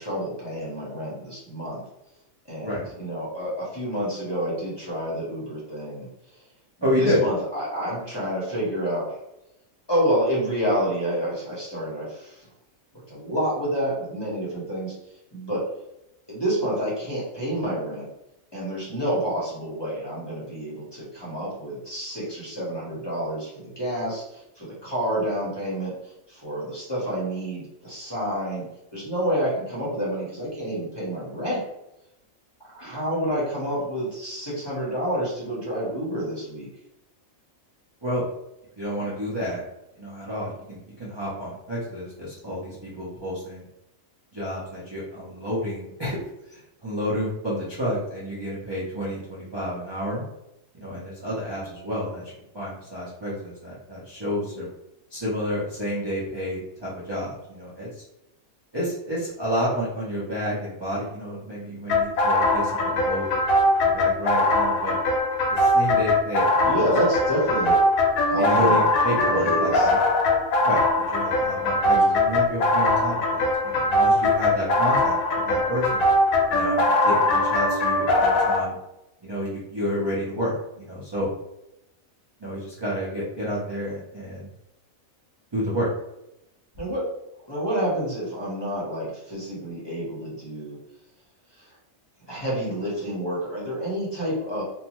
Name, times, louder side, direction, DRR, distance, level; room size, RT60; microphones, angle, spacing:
voice 1, 0.0-1.8 2.5-6.1 6.8-9.2 9.9-12.4 13.1-14.9 15.3-15.7 16.3-18.1 18.5-28.6 28.9-31.6 32.7-36.7 66.6-67.8 68.2-68.9 69.3-69.9 71.9-72.1 86.8-87.1 87.4-90.8 91.5-91.7 92.3-94.6, equal, 25° left, -7 dB, 0.7 m, -28 dB
voice 2, 6.8-7.2 38.0-38.2 38.8-39.6 40.0-43.6 44.3-46.2 46.5-50.2 50.8-52.2 52.5-54.6 55.1-57.9 58.7-63.4 63.8-65.0 65.5-66.8 68.4-70.0 70.6-70.8 71.1-76.1 76.5-78.7 79.2-81.3 82.4-84.5 85.5-85.9, equal, 30° right, -9 dB, 0.5 m, -30 dB
sound 1, 61.9-78.6, left 1 dB, 85° left, 1.0 m, -21 dB
2.6 x 2.2 x 2.9 m, 0.87 s
omnidirectional pair, 1.4 m